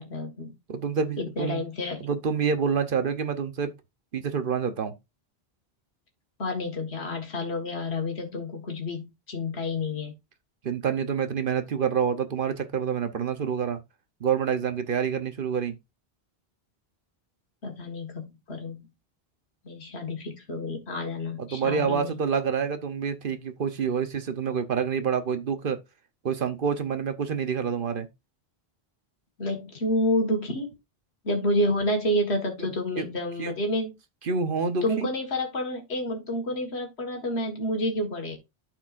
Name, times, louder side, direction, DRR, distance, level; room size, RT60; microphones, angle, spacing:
voice 1, 0.0-0.5 1.2-2.0 6.4-10.1 17.6-18.9 19.7-22.2 29.4-30.7 31.2-33.9 34.8-38.4, left 1 dB, 85° left, 1.9 m, -29 dB
voice 2, 0.7-1.6 2.0-3.7 4.1-4.9 10.6-13.8 14.2-15.8 21.4-25.8 26.2-28.1 32.6-32.7 33.0-33.1 33.4-33.5 34.2-35.1, right 6 dB, 60° right, 1.0 m, -27 dB
12.0 x 4.6 x 2.5 m
omnidirectional pair, 1.1 m